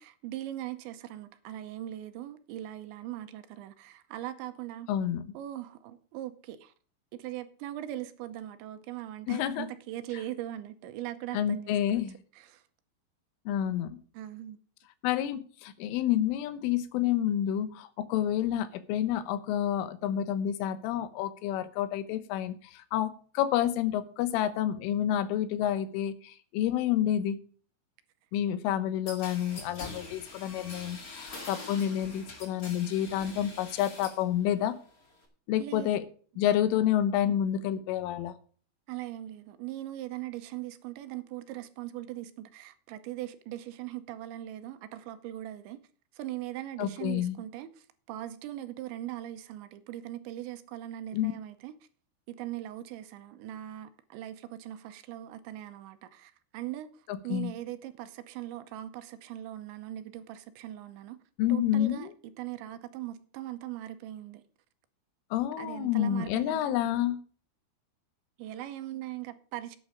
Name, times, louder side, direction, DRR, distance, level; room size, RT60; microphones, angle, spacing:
voice 1, 0.0-4.9 5.3-6.7 7.1-12.6 14.1-14.6 35.6-35.9 38.9-45.8 46.1-51.7 52.3-61.2 61.5-62.1 62.4-64.4 65.6-66.8 68.4-69.8, right 13 dB, 80° right, 3.0 m, -40 dB
voice 2, 4.9-5.2 9.3-9.7 11.3-12.2 13.5-14.0 15.0-27.4 28.3-34.8 35.5-36.0 36.4-38.3 46.8-47.4 51.1-51.3 57.1-57.5 61.4-62.1 65.3-67.2, left 11 dB, 85° left, 3.5 m, -29 dB
sound 1, 29.1-34.3 34.6-35.2, left 2 dB, 50° left, 1.0 m, -44 dB
11.0 x 9.1 x 5.1 m
omnidirectional pair, 5.6 m